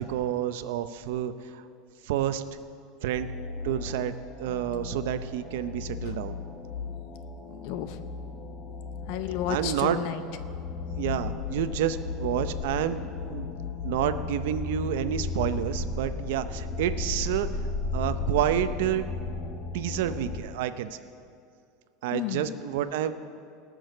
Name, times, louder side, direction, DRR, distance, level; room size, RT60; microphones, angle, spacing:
voice 1, 0.0-1.6 2.0-2.4 3.0-3.3 3.6-4.1 4.4-6.3 9.5-10.0 11.0-13.6 13.8-17.5 17.9-19.0 19.7-21.0 22.0-23.1, right 11 dB, 70° right, 11 dB, 0.6 m, -29 dB
sound 1, 3.0-20.4, left 4 dB, 30° left, 1.0 m, -35 dB
voice 2, 7.5-8.1 9.1-10.2 22.1-22.6, left 11 dB, 50° left, 11 dB, 0.7 m, -32 dB
19.0 x 6.3 x 6.6 m, 2.3 s
supercardioid pair, 175°, 0 cm